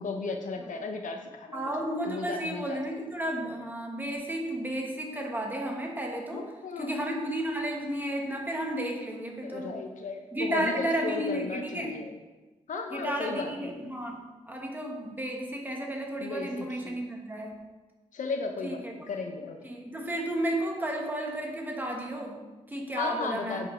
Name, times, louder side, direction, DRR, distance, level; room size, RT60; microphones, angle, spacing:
voice 1, 0.0-2.8 6.3-7.0 9.4-12.1 12.7-13.7 16.2-17.0 18.1-19.6 23.0-23.7, left 4 dB, 80° left, 4 dB, 1.0 m, -35 dB
voice 2, 1.5-6.4 6.8-9.8 10.3-12.0 12.9-17.5 18.6-18.9 19.6-23.7, right 1 dB, 15° right, 0 dB, 1.5 m, -33 dB
9.0 x 5.4 x 3.9 m, 1.2 s
wide cardioid pair, 105°, 13 cm